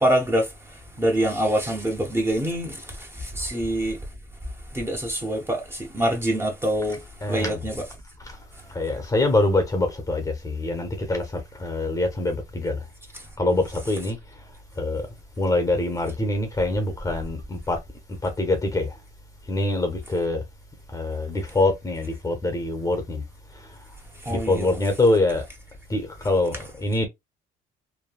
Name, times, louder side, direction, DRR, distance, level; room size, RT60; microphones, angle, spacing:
voice 1, 0.0-4.1 4.4-7.8 8.5-8.6 13.2-13.3 24.1-24.7, right 1 dB, 15° right, 0.8 m, -26 dB
voice 2, 7.2-7.6 8.2-8.4 8.7-12.9 13.4-14.2 14.8-15.1 15.4-17.8 18.1-19.0 19.5-20.4 20.9-23.2 23.5-23.8 24.3-25.5 25.9-27.1, left 2 dB, 20° left, 0.7 m, -24 dB
3.3 x 2.2 x 2.3 m
cardioid pair, 110°, 17 cm